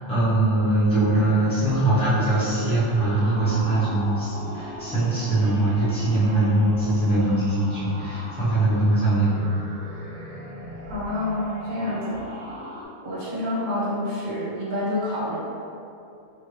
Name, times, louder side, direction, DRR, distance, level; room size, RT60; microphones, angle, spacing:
voice 1, 0.1-9.5, right 2 dB, 5° left, -12 dB, 0.7 m, -22 dB
sound 1, 1.1-12.8, left 1 dB, 40° right, 0.5 m, -38 dB
voice 2, 10.9-12.3 13.0-15.4, left 1 dB, 80° right, -8 dB, 1.5 m, -28 dB
3.1 x 2.5 x 3.3 m, 2.6 s
omnidirectional pair, 1.5 m